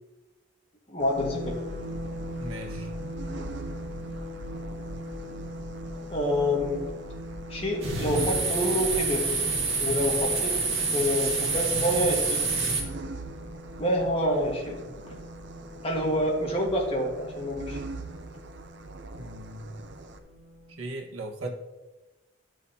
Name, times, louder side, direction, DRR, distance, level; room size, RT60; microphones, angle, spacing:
voice 1, 0.9-1.6 6.1-6.8 7.5-9.4 9.8-12.4 13.8-15.1 15.8-17.8, left 1 dB, 30° left, -1 dB, 1.6 m, -27 dB
sound 1, 1.0-20.2, right 3 dB, 55° right, 0.6 m, -43 dB
sound 2, 1.1-20.7, equal, 35° right, 2.5 m, -41 dB
voice 2, 2.4-2.9 19.1-19.6 20.8-21.5, right 1 dB, 90° right, 0 dB, 1.5 m, -37 dB
sound 3, 7.8-12.8, right 4 dB, 70° right, 1.7 m, -27 dB
12.5 x 6.2 x 2.8 m, 1.1 s
head